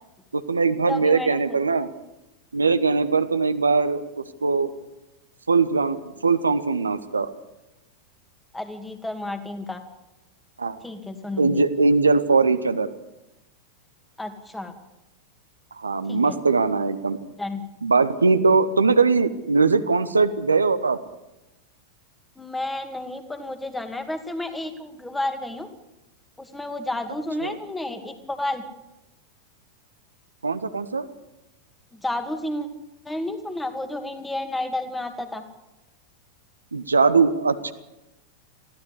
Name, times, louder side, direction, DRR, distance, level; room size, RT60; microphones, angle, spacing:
voice 1, 0.3-1.9 2.5-4.7 5.5-7.3 10.6-10.8 11.4-12.9 15.7-17.2 17.8-21.0 27.4-27.6 30.4-31.1 36.7-37.7, right 4 dB, 75° right, 10 dB, 1.2 m, -21 dB
voice 2, 0.9-1.4 8.5-9.8 10.8-11.6 14.2-14.7 16.1-16.4 17.4-17.6 22.4-25.7 26.5-28.6 32.0-32.7 33.1-35.4, left 1 dB, 5° left, 7 dB, 2.3 m, -31 dB
22.0 x 15.5 x 8.3 m, 0.96 s
figure-of-eight pair, 90°, 0 cm